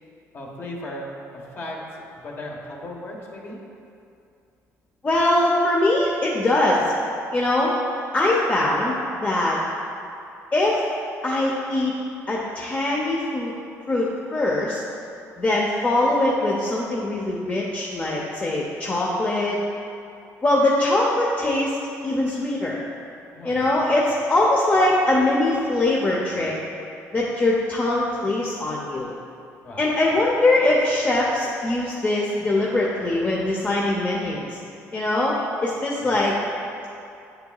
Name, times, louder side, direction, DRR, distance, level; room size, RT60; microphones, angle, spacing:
voice 1, 0.3-1.8 2.2-3.6 23.3-23.8 29.6-30.2 36.0-36.2, left 1 dB, 45° left, -1 dB, 1.3 m, -37 dB
voice 2, 5.0-6.9 7.3-7.7 8.1-9.6 10.5-10.8 11.2-11.9 12.3-13.5 13.9-14.8 15.4-19.6 20.4-21.8 22.0-22.7 23.4-26.5 27.1-29.1 29.8-34.6 34.9-36.4, left 2 dB, 25° left, -4 dB, 0.7 m, -22 dB
9.3 x 6.8 x 2.4 m, 2.6 s
cardioid pair, 115°, 6 cm